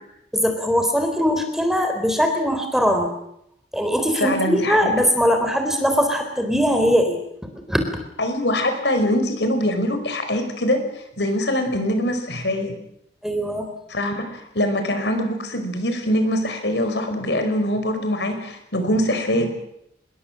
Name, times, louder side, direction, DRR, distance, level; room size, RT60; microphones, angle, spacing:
voice 1, 0.3-3.1 3.7-7.2 7.5-7.8 13.2-13.7, equal, 5° right, 5 dB, 3.7 m, -21 dB
voice 2, 4.2-4.9 8.2-10.9 11.2-12.7 13.9-19.5, left 1 dB, 75° left, 7 dB, 5.3 m, -23 dB
26.5 x 22.0 x 7.6 m, 0.77 s
head